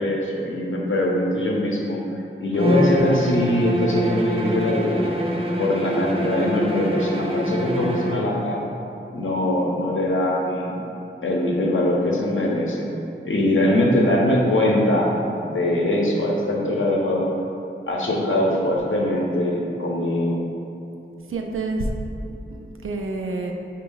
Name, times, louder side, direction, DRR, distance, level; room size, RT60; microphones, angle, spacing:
voice 1, 0.0-2.0 2.4-5.1 5.6-8.6 9.1-10.8 11.2-12.9 13.2-15.1 15.4-17.3 17.9-20.4, left 1 dB, 70° left, -3 dB, 0.7 m, -22 dB
Bowed string instrument, 2.5-8.4, equal, 25° right, 0.5 m, -25 dB
voice 2, 21.3-21.9 22.3-23.5, right 2 dB, 85° right, 2 dB, 0.4 m, -28 dB
5.1 x 2.2 x 3.8 m, 2.8 s
wide cardioid pair, 70°, 21 cm